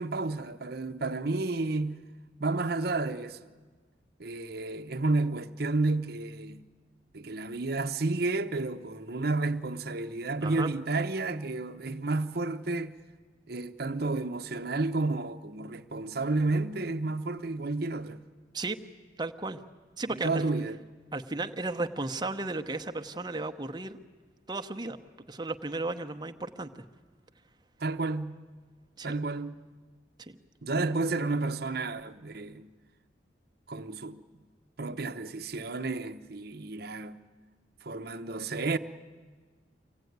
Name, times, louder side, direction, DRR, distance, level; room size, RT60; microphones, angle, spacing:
voice 1, 0.0-2.0 2.4-3.4 4.2-6.7 7.1-12.9 13.5-18.2 20.2-20.8 27.8-28.4 29.0-29.6 30.6-32.7 33.7-34.2 34.8-37.2 37.8-38.8, right 3 dB, 60° right, 0.8 m, -31 dB
voice 2, 10.4-10.7 18.5-18.8 19.2-19.6 20.0-20.4 21.1-24.0 24.5-25.0 25.3-26.7 29.0-29.1 30.2-30.4, right 2 dB, 25° right, 0.8 m, -34 dB
24.5 x 17.0 x 9.4 m
head